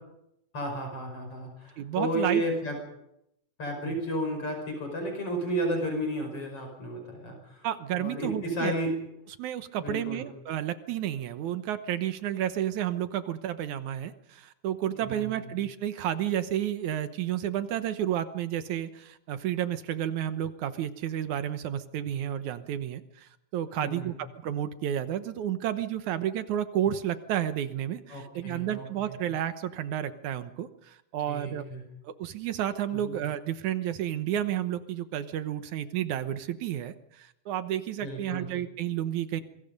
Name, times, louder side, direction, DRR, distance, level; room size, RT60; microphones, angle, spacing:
voice 1, 0.5-2.8 3.6-7.7 7.9-9.0 9.8-10.2 15.1-15.5 23.8-24.1 28.1-29.2 31.3-31.8 32.9-33.1 38.0-38.5, right 1 dB, 45° left, 3 dB, 6.4 m, -32 dB
voice 2, 1.8-2.4 3.9-4.0 7.6-8.7 9.4-31.6 32.0-39.4, right 11 dB, 70° right, 11 dB, 2.4 m, -31 dB
26.5 x 23.5 x 5.4 m, 0.81 s
omnidirectional pair, 3.6 m